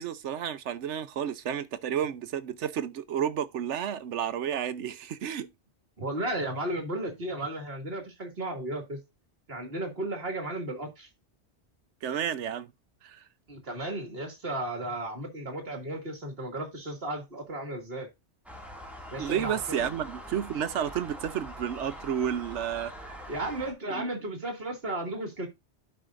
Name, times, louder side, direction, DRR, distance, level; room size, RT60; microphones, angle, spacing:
voice 1, 0.0-5.5 12.0-12.7 13.0-13.2 19.2-22.9 23.9-24.1, right 9 dB, 90° right, 1.1 m, -31 dB
voice 2, 6.0-9.0 9.5-11.1 13.5-18.1 19.1-19.9 23.3-25.5, right 1 dB, 60° right, 2.5 m, -34 dB
sound 1, 18.5-23.7, equal, ahead, 2.1 m, -43 dB
12.0 x 5.6 x 2.5 m
omnidirectional pair, 1.2 m